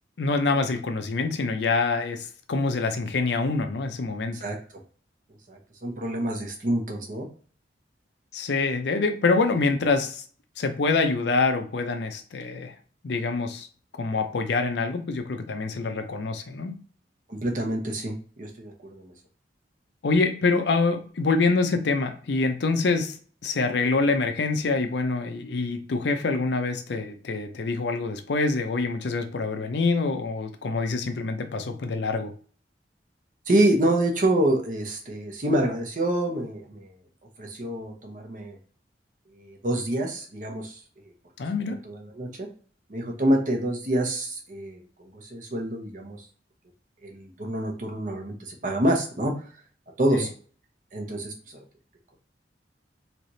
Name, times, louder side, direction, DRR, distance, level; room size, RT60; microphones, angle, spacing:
voice 1, 0.2-4.4 8.3-10.2 10.6-12.7 13.0-13.7 13.9-16.8 20.0-23.2 23.4-32.3 41.4-41.8, left 3 dB, 75° left, 6 dB, 0.5 m, -25 dB
voice 2, 5.5-7.3 17.3-19.1 33.5-36.9 37.4-38.6 39.4-40.8 41.8-42.5 42.9-46.2 47.0-49.3 50.0-50.3 50.9-51.6, right 1 dB, 45° right, 2 dB, 0.8 m, -27 dB
3.2 x 2.9 x 2.7 m, 0.43 s
head